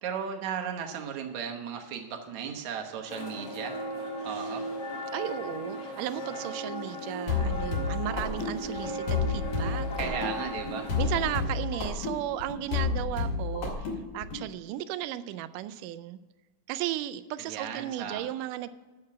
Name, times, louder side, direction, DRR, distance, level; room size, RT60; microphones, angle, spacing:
voice 1, 0.0-3.8 4.2-4.7 10.0-10.9 17.4-18.3, right 7 dB, 65° right, 3 dB, 2.3 m, -35 dB
sound 1, 3.1-11.4, equal, 50° left, 1.4 m, -37 dB
voice 2, 5.1-10.2 11.0-13.9 14.1-16.2 16.7-18.7, right 13 dB, 85° right, 13 dB, 2.1 m, -35 dB
sound 2, 7.3-14.4, left 4 dB, 75° left, 3.4 m, -31 dB
8.7 x 6.7 x 7.4 m, 1.2 s
omnidirectional pair, 3.7 m